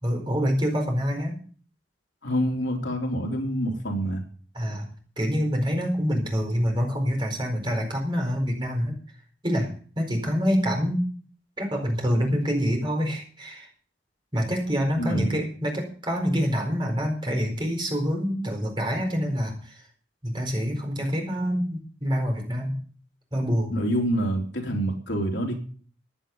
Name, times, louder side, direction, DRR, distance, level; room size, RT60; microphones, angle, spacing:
voice 1, 0.0-1.4 4.5-4.9 5.2-9.0 9.4-9.7 10.0-11.0 11.6-13.7 14.3-19.8 20.2-22.8 23.3-23.8, equal, 25° right, 2 dB, 4.5 m, -26 dB
voice 2, 2.2-4.2 14.9-15.4 23.7-25.6, equal, 75° left, 1 dB, 3.2 m, -27 dB
15.5 x 10.0 x 5.4 m, 0.43 s
head